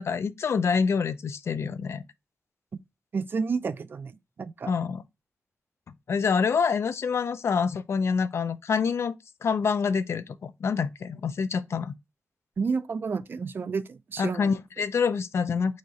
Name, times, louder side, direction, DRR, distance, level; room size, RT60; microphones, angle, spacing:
voice 1, 0.0-2.0 4.7-5.0 6.1-9.1 9.4-11.9 14.2-15.8, left 5 dB, 80° left, 0.5 m, -26 dB
voice 2, 3.1-4.7 12.6-14.5, right 5 dB, 50° right, 0.4 m, -30 dB
4.3 x 2.5 x 4.8 m
wide cardioid pair, 160°, 4 cm